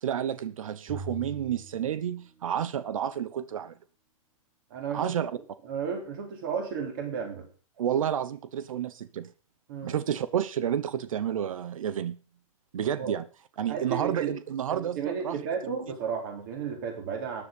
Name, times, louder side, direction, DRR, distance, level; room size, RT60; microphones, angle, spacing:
voice 1, 0.0-3.7 4.9-5.4 7.8-9.3 9.8-12.2 12.7-13.2 13.6-15.4 15.7-15.8, right 9 dB, 70° right, 1.0 m, -30 dB
sound 1, 0.9-2.7, right 2 dB, 15° right, 4.0 m, -42 dB
voice 2, 4.7-5.1 5.6-7.4 9.7-10.0 13.0-13.2 13.7-14.3 14.7-17.4, right 6 dB, 40° right, 3.6 m, -33 dB
13.5 x 10.0 x 5.3 m
hypercardioid pair, 175°, 18 cm